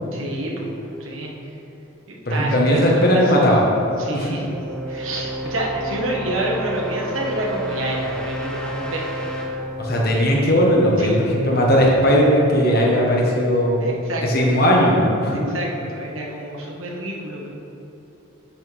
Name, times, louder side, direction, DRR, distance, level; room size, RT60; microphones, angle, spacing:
voice 1, 0.1-1.3 2.1-3.4 4.0-4.5 4.9-9.0 11.0-11.5 13.8-14.6 15.3-17.5, right 1 dB, 80° right, -2 dB, 1.4 m, -28 dB
voice 2, 2.2-3.6 4.1-4.3 9.8-13.8 14.2-15.4, equal, 50° left, -2 dB, 1.3 m, -17 dB
sound 1, 3.6-11.4, equal, 5° left, 0.6 m, -31 dB
10.0 x 6.2 x 3.5 m, 2.9 s
head